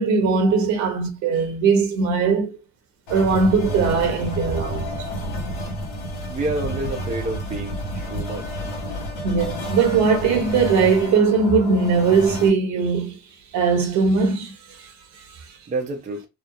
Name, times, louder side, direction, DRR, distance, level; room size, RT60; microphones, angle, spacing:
voice 1, 0.0-2.6 3.1-5.1 9.2-13.2 13.5-15.6, right 5 dB, 55° right, 0.9 m, -20 dB
sound 1, 3.1-12.5, equal, 85° left, 1.1 m, -30 dB
voice 2, 6.3-7.8 8.1-8.5 15.7-16.3, right 2 dB, 20° right, 0.6 m, -28 dB
2.9 x 2.0 x 2.3 m
supercardioid pair, 110°, 34 cm